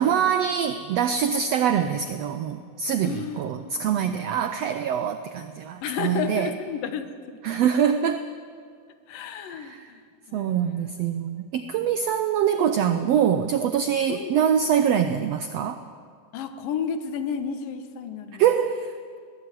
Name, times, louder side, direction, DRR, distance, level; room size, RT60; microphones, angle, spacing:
voice 1, 0.0-6.5 7.4-8.2 9.5-9.9 10.3-15.8 18.3-18.9, right 8 dB, 80° right, 9 dB, 1.4 m, -24 dB
voice 2, 3.0-4.2 5.8-7.4 9.1-10.0 10.3-10.9 11.6-11.7 14.1-14.4 16.3-18.4, left 7 dB, 80° left, 9 dB, 3.0 m, -32 dB
21.0 x 17.0 x 9.2 m, 2.2 s
omnidirectional pair, 3.9 m